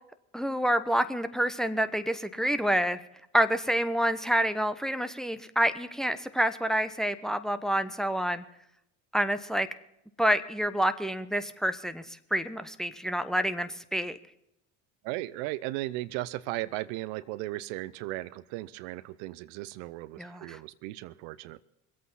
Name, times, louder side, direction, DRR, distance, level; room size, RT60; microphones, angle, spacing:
voice 1, 0.3-3.0 3.3-8.4 9.1-9.7 10.2-14.2 20.2-20.6, equal, ahead, 10 dB, 1.0 m, -28 dB
voice 2, 15.0-21.6, right 17 dB, 65° right, 17 dB, 0.8 m, -36 dB
23.0 x 8.5 x 5.7 m, 0.80 s
hypercardioid pair, 70°, 46 cm